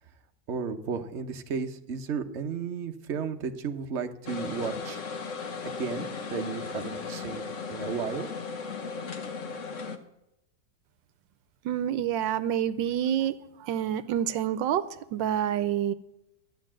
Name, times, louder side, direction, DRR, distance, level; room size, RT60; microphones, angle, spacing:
voice 1, 0.5-5.0 5.8-8.3, right 6 dB, 45° right, 5 dB, 1.1 m, -34 dB
sound 1, 4.3-10.0, left 4 dB, 50° left, 1.3 m, -36 dB
voice 2, 11.6-14.8 15.1-15.9, right 10 dB, 80° right, 13 dB, 1.4 m, -28 dB
13.5 x 9.2 x 7.5 m, 0.87 s
omnidirectional pair, 2.0 m